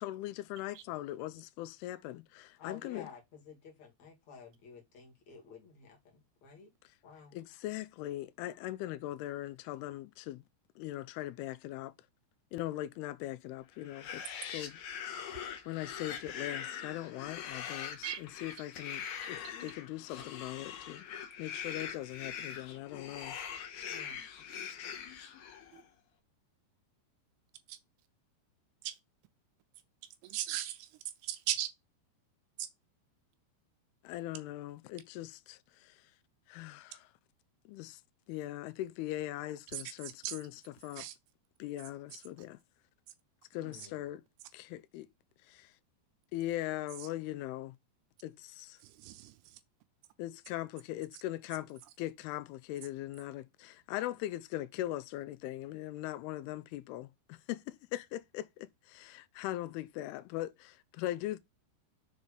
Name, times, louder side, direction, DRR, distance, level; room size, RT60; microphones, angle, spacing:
voice 1, 0.0-3.1 7.3-10.4 10.8-11.9 12.5-14.2 14.5-14.8 15.1-21.1 21.4-23.4 34.0-36.1 36.5-37.1 37.7-38.0 38.3-40.5 40.8-41.1 41.6-42.6 43.5-44.2 44.5-45.1 45.5-45.7 46.3-47.8 48.2-48.8 50.2-61.4, left 15 dB, 90° left, 2.2 m, -40 dB
voice 2, 2.6-6.0 6.4-6.7 7.0-7.3 23.9-24.2 43.5-44.0, left 5 dB, 45° left, 3.0 m, -52 dB
sound 1, 13.8-25.8, left 8 dB, 65° left, 2.1 m, -43 dB
voice 3, 19.2-19.5 25.7-25.8 27.7-27.8 28.8-29.0 30.2-30.9 31.2-31.7 32.6-32.7 39.7-40.4 40.9-41.2 47.0-47.1 48.8-49.6, right 13 dB, 80° right, 2.4 m, -38 dB
7.1 x 3.9 x 5.1 m
omnidirectional pair, 5.1 m